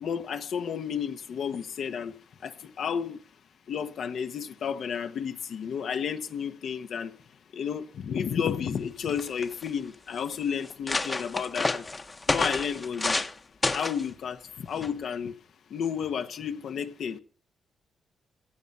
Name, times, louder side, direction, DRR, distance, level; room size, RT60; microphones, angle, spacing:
voice 1, 0.0-2.1 2.4-3.2 3.7-7.1 7.5-11.8 12.3-13.3 13.7-15.3 15.7-17.2, left 7 dB, 65° left, 1.2 m, -32 dB
sound 1, 8.8-8.9 9.1-9.7 10.3-10.4 10.6-13.3 13.6-14.0 14.8-15.1, left 3 dB, 20° left, 1.1 m, -29 dB
17.5 x 12.5 x 5.6 m
cardioid pair, 130°, 0 cm